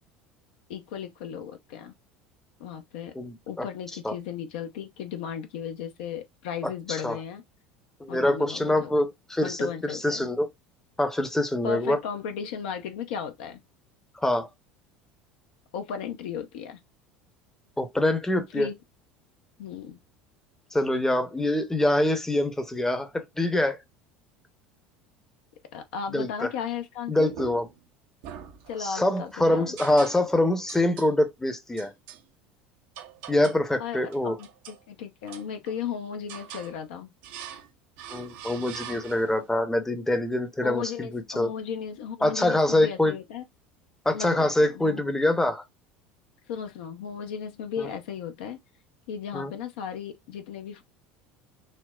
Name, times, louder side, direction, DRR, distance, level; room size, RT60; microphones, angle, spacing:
voice 1, 0.7-1.9 2.6-3.1 3.5-7.4 8.1-8.9 9.4-10.3 11.6-13.6 15.7-16.8 18.5-18.7 19.6-20.0 25.7-27.3 28.7-29.8 33.8-37.1 40.6-43.4 44.1-45.0 46.5-48.6 49.1-50.8, left 7 dB, 65° left, 0.6 m, -35 dB
voice 2, 3.2-3.7 4.0-4.1 7.0-7.2 8.0-10.5 11.0-12.0 14.2-14.5 17.8-18.7 20.7-23.8 26.1-26.5 27.1-27.7 28.8-31.9 33.3-34.4 38.1-41.5 42.2-43.1 44.0-45.6 47.8-47.9 49.3-49.5, left 1 dB, 5° left, 0.7 m, -25 dB
sound 1, 27.3-27.8 28.2-29.1 29.8-30.4 30.7-31.1 31.8-32.2 32.9-33.7 34.1-34.8 35.3-35.9 36.3-36.7 37.2-37.7 38.0-39.4, right 9 dB, 60° right, 0.6 m, -43 dB
4.2 x 2.0 x 2.3 m
figure-of-eight pair, 70°, 6 cm